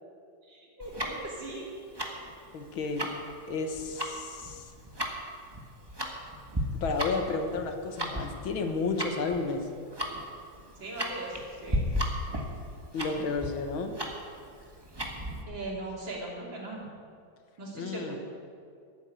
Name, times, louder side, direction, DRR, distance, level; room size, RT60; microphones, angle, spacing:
voice 1, 0.4-1.7 10.8-11.8 15.5-16.9 17.6-18.2, right 2 dB, 70° right, -3 dB, 3.9 m, -39 dB
Tick-tock, 0.8-15.4, equal, 15° right, 1.4 m, -35 dB
voice 2, 2.5-3.1 3.5-4.7 6.7-9.7 12.9-14.0 17.7-18.2, left 4 dB, 85° left, 6 dB, 2.1 m, -32 dB
14.5 x 9.1 x 9.4 m, 2.3 s
omnidirectional pair, 2.1 m